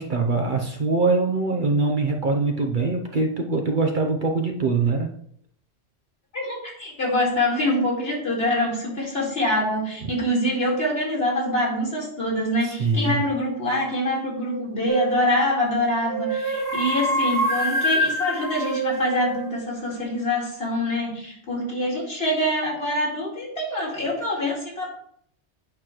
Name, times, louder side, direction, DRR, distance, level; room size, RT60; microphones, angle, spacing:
voice 1, 0.0-5.1 12.6-13.2, right 3 dB, 50° right, 3 dB, 0.8 m, -23 dB
voice 2, 6.3-24.9, left 1 dB, 55° left, -3 dB, 2.5 m, -25 dB
sound 1, 14.9-15.3 16.1-19.5, right 1 dB, 20° left, 1.2 m, -25 dB
8.7 x 3.1 x 5.9 m, 0.66 s
omnidirectional pair, 1.2 m